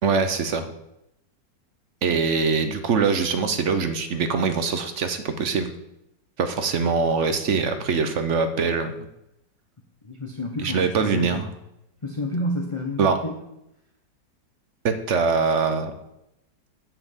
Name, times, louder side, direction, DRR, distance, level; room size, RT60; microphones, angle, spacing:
voice 1, 0.0-0.7 2.0-5.7 6.4-8.9 10.6-11.5 13.0-13.2 14.8-15.9, right 5 dB, 55° right, 9 dB, 0.8 m, -23 dB
voice 2, 10.0-11.4 12.0-13.3, left 1 dB, 25° left, 1 dB, 0.6 m, -30 dB
7.6 x 7.1 x 7.2 m, 0.86 s
omnidirectional pair, 2.0 m